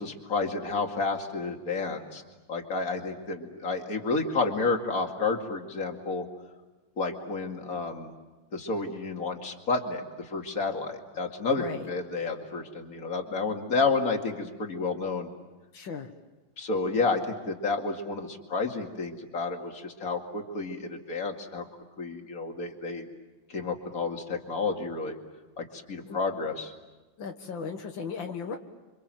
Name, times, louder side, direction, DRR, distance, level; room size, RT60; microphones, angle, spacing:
voice 1, 0.0-2.2 2.5-6.3 7.0-8.1 8.5-15.3 16.6-21.7 22.0-23.1 23.5-25.2 25.6-26.7, left 3 dB, 45° left, 3 dB, 2.7 m, -30 dB
voice 2, 11.6-11.9 15.7-16.1 26.1-26.2 27.2-28.6, left 5 dB, 80° left, 4 dB, 2.2 m, -36 dB
29.5 x 25.0 x 7.7 m, 1.2 s
omnidirectional pair, 2.1 m